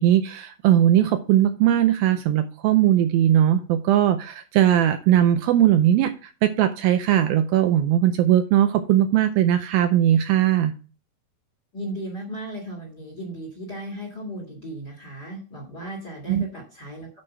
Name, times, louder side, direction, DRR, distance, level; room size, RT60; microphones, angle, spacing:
voice 1, 0.0-10.7 16.3-16.4, right 11 dB, 85° right, 8 dB, 2.2 m, -19 dB
voice 2, 11.7-17.2, right 1 dB, 35° left, 1 dB, 1.7 m, -36 dB
8.8 x 4.8 x 5.9 m, 0.35 s
omnidirectional pair, 4.7 m